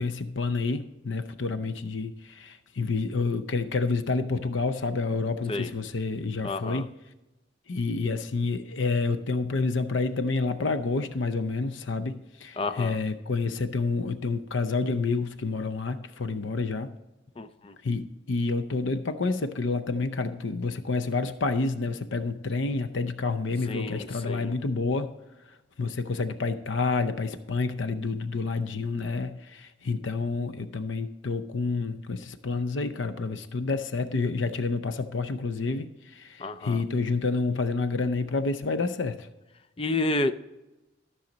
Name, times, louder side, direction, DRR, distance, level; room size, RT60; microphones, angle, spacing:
voice 1, 0.0-6.9 7.7-16.9 17.8-25.1 25.8-39.3, left 3 dB, 75° left, 11 dB, 0.6 m, -29 dB
voice 2, 6.4-6.8 12.6-13.0 17.4-17.7 23.7-24.5 36.4-36.8 39.8-40.3, left 2 dB, 30° left, 10 dB, 0.4 m, -30 dB
13.5 x 6.4 x 4.0 m, 1.0 s
head